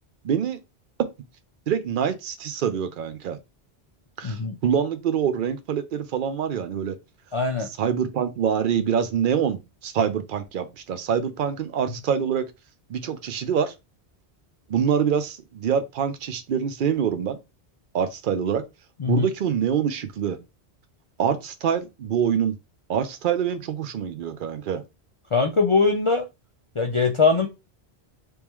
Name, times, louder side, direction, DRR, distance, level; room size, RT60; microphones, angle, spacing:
voice 1, 0.2-0.6 1.7-3.4 4.2-4.3 4.6-6.9 7.8-12.4 12.9-13.7 14.7-17.4 17.9-18.6 19.1-20.4 21.2-22.5 22.9-24.8, right 8 dB, 55° right, 0.7 m, -25 dB
voice 2, 4.2-4.6 7.3-7.7 19.0-19.3 25.3-26.3 26.8-27.5, left 4 dB, 50° left, 0.4 m, -21 dB
3.5 x 3.1 x 3.0 m
omnidirectional pair, 1.1 m